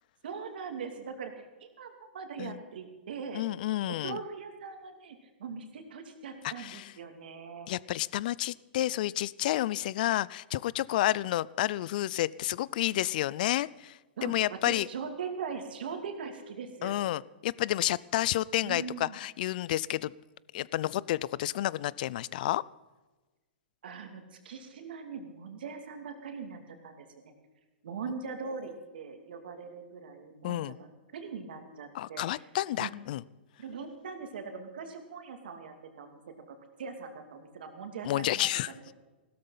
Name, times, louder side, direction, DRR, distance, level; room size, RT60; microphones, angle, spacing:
voice 1, 0.2-3.4 4.0-7.7 14.2-17.0 18.6-19.2 23.8-27.3 27.8-30.9 31.1-32.3 32.8-32.9 33.6-38.5, right 5 dB, 70° right, 6 dB, 2.6 m, -41 dB
voice 2, 3.3-4.2 6.4-6.9 7.7-14.9 16.8-20.1 20.5-22.6 30.4-30.8 31.9-33.2 38.0-38.7, left 14 dB, 55° left, 22 dB, 0.4 m, -30 dB
16.0 x 13.0 x 5.7 m, 1.2 s
hypercardioid pair, 120°, 5 cm